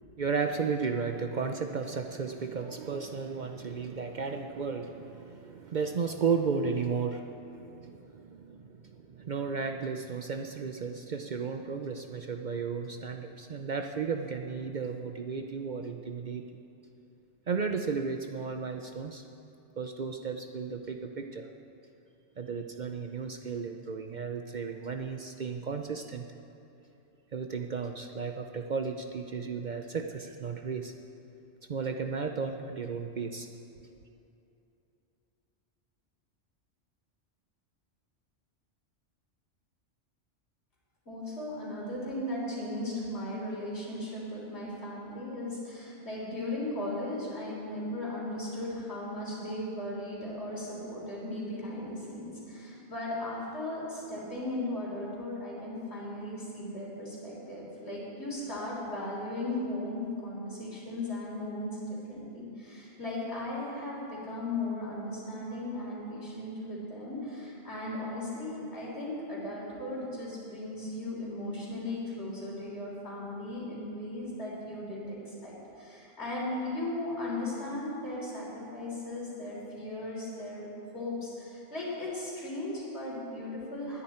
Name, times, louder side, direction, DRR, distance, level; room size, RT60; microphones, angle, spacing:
voice 1, 0.2-16.4 17.5-19.2 19.8-21.5 22.4-26.3 27.3-30.9 31.7-33.5, right 5 dB, 50° right, 5 dB, 0.6 m, -34 dB
voice 2, 41.1-61.8 62.1-84.0, left 1 dB, 65° left, -5 dB, 4.0 m, -37 dB
20.0 x 9.8 x 4.4 m, 2.8 s
omnidirectional pair, 1.2 m